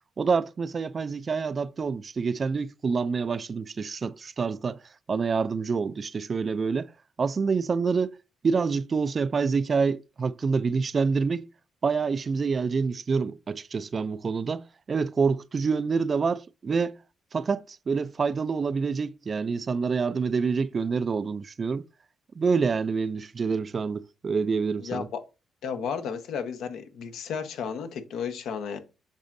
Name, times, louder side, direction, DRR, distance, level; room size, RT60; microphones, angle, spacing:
voice 1, 0.2-4.8 5.1-6.9 7.2-8.2 8.4-11.5 11.8-17.0 17.3-21.8 22.4-25.1, right 5 dB, 40° right, 0.4 m, -27 dB
voice 2, 25.6-28.8, left 7 dB, 80° left, 1.2 m, -33 dB
7.9 x 6.0 x 2.6 m
cardioid pair, 90°, 0 cm